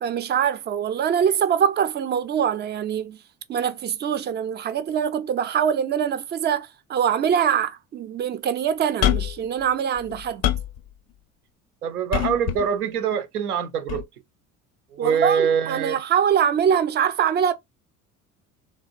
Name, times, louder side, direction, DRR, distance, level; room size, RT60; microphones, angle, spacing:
voice 1, 0.0-3.2 3.5-10.4 15.0-17.5, right 8 dB, 25° right, 0.3 m, -23 dB
sound 1, 9.0-9.5 10.0-10.8 12.1-12.7 13.9-14.0, left 11 dB, 40° left, 0.4 m, -24 dB
voice 2, 11.8-14.0 14.9-16.0, right 7 dB, 90° right, 0.5 m, -24 dB
2.9 x 2.2 x 2.4 m
hypercardioid pair, 65°, 44 cm